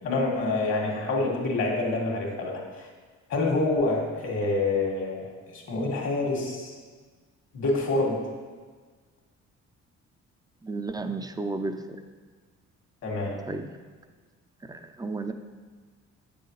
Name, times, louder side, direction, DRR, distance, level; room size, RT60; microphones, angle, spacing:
voice 1, 0.0-2.9 3.3-5.2 5.5-6.7 7.5-8.2 13.0-13.4, left 2 dB, 60° left, -1 dB, 2.1 m, -27 dB
voice 2, 10.6-12.0 13.5-13.7 14.7-15.3, right 3 dB, 15° right, 8 dB, 0.5 m, -32 dB
7.9 x 6.8 x 3.2 m, 1.4 s
cardioid pair, 90°, 30 cm